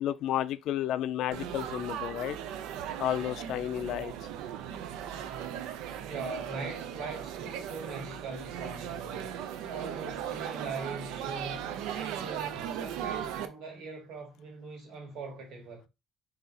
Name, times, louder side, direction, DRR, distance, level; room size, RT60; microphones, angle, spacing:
voice 1, 0.0-2.4 3.0-4.1, left 11 dB, 60° left, 0.3 m, -31 dB
Laughter / Chatter / Crowd, 1.3-13.5, right 9 dB, 85° right, 0.5 m, -38 dB
voice 2, 5.8-9.3 9.7-15.9, right 4 dB, 70° right, 1.7 m, -41 dB
3.9 x 2.8 x 4.0 m
cardioid pair, 155°, 0 cm